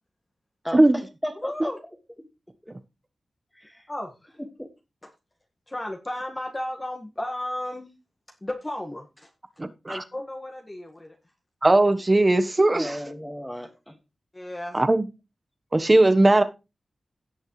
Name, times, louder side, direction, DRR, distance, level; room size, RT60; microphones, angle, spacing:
voice 1, 0.6-1.7 2.6-2.7 3.6-3.8 4.6-4.7 12.7-13.9, equal, 5° left, 3 dB, 2.0 m, -35 dB
voice 2, 1.4-1.8 3.9-4.4 5.0-5.1 5.7-7.9 8.4-9.3 9.9-11.2 14.3-14.8, left 1 dB, 25° left, 2 dB, 1.7 m, -34 dB
voice 3, 9.6-10.0 11.6-13.0 14.7-15.0 15.7-16.4, right 2 dB, 25° right, 10 dB, 1.2 m, -18 dB
17.0 x 6.4 x 3.2 m, 0.27 s
wide cardioid pair, 75°, 0 cm